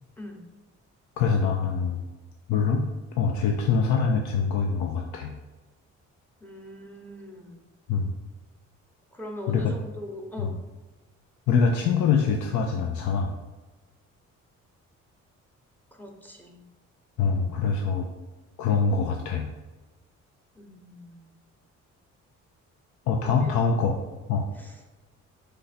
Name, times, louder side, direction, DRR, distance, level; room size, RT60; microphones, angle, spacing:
voice 1, 1.2-2.0 2.5-2.9 3.2-5.3 7.9-8.1 9.5-9.7 10.4-10.5 11.5-13.3 17.2-18.1 18.6-19.5 23.1-24.0 24.3-24.4, left 5 dB, 75° left, 2 dB, 0.5 m, -24 dB
voice 2, 6.4-7.6 9.1-10.5 15.9-16.6 17.3-17.5 20.6-21.3 23.2-23.5 24.5-24.8, left 1 dB, 5° left, 1 dB, 0.8 m, -41 dB
3.9 x 3.3 x 4.1 m, 1.2 s
cardioid pair, 90°, 30 cm